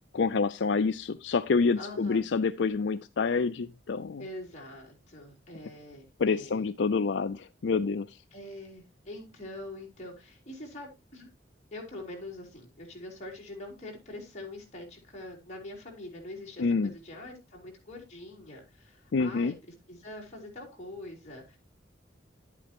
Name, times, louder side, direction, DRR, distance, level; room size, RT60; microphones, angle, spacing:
voice 1, 0.1-4.2 6.2-8.2 16.6-16.9 19.1-19.5, left 4 dB, 70° left, 11 dB, 0.4 m, -27 dB
voice 2, 1.8-2.2 4.2-6.7 8.3-11.3 11.7-21.6, left 1 dB, 35° left, -1 dB, 4.1 m, -44 dB
11.5 x 8.4 x 2.9 m, 0.25 s
head